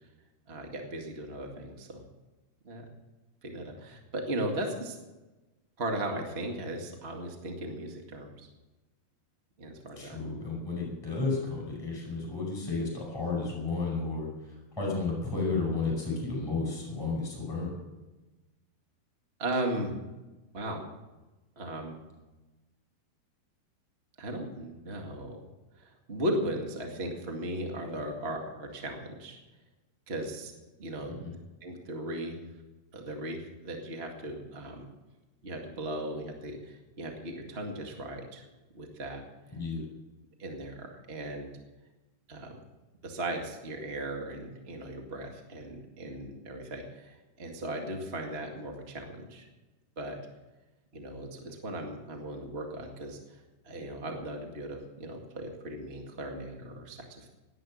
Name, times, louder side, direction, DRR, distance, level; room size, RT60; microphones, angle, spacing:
voice 1, 0.5-2.0 2.6-2.9 3.4-5.0 5.8-8.5 9.6-10.2 19.4-20.0 20.5-20.9 21.5-22.0 24.2-25.4 25.7-29.4 30.1-30.5 30.8-31.2 31.6-32.4 32.9-34.8 35.4-38.4 38.7-39.2 40.4-41.5 42.3-42.6 43.0-49.5 49.9-50.2 50.9-57.3, right 1 dB, 40° right, 2 dB, 0.9 m, -37 dB
voice 2, 10.0-17.8 31.1-31.3 39.5-39.8, left 3 dB, 5° left, -1 dB, 5.0 m, -32 dB
18.0 x 11.5 x 6.5 m, 1.1 s
omnidirectional pair, 4.7 m